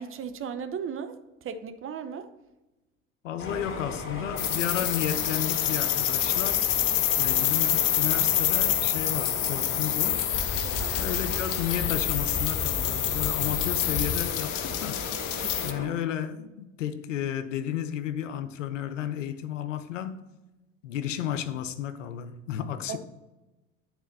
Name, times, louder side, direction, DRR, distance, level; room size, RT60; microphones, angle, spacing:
voice 1, 0.0-2.3 4.7-4.9 10.6-11.1 15.4-15.8 22.9-23.0, right 7 dB, 35° right, 0.7 m, -37 dB
voice 2, 3.2-6.7 7.2-10.3 11.0-15.0 15.6-20.2 20.8-23.0, left 10 dB, 85° left, 0.6 m, -33 dB
sound 1, 3.4-15.9, left 3 dB, 35° left, 2.1 m, -35 dB
sound 2, 4.4-15.7, left 12 dB, 55° left, 0.8 m, -27 dB
9.2 x 4.2 x 4.0 m
hypercardioid pair, 65°, 36 cm